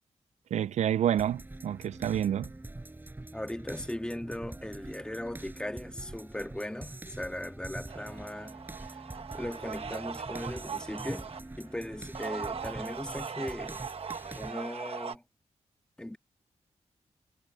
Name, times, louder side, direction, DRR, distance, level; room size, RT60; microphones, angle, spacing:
voice 1, 0.5-2.5, right 10 dB, 75° right, 0.4 m, -28 dB
sound 1, 1.2-14.5, right 2 dB, 15° right, 5.9 m, -45 dB
voice 2, 3.3-8.6 9.3-11.3 11.6-13.8 14.3-15.2 16.0-16.2, left 1 dB, 5° left, 1.6 m, -38 dB
sound 2, 7.9-11.4 12.0-15.2, right 6 dB, 55° right, 1.2 m, -40 dB
wide cardioid pair, 110°, 12 cm